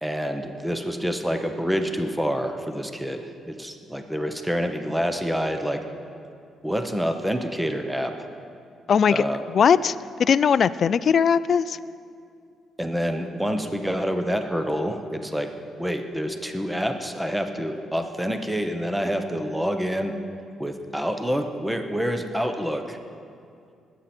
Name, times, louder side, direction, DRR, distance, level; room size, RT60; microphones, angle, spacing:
voice 1, 0.0-5.8 6.6-8.3 9.1-9.4 12.8-15.5 15.8-20.2 20.6-23.0, equal, 5° right, 6 dB, 0.9 m, -27 dB
voice 2, 8.9-9.2 9.5-11.8, left 7 dB, 55° left, 17 dB, 0.3 m, -19 dB
20.0 x 9.1 x 4.4 m, 2.4 s
cardioid pair, 90°, 0 cm